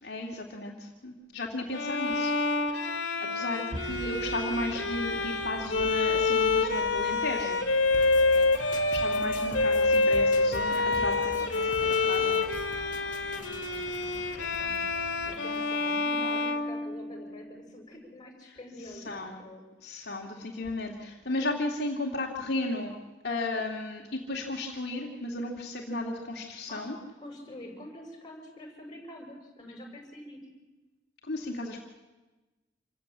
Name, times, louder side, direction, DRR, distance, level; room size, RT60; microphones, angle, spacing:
voice 1, 0.0-2.3 2.7-2.9 3.2-7.6 8.9-12.4 18.9-19.4 19.8-23.0 23.2-27.0 31.2-31.8, left 2 dB, 60° left, -1 dB, 2.4 m, -34 dB
Bowed string instrument, 1.7-17.5, left 3 dB, 90° left, 2.2 m, -27 dB
sound 1, 3.7-15.3, right 1 dB, 85° right, 2.1 m, -46 dB
sound 2, 7.9-15.8, left 2 dB, 45° left, 2.0 m, -45 dB
voice 2, 13.1-14.1 14.4-19.6 26.7-26.8 27.2-30.4, left 1 dB, 25° left, 1 dB, 6.2 m, -47 dB
27.0 x 14.5 x 8.7 m, 1.1 s
head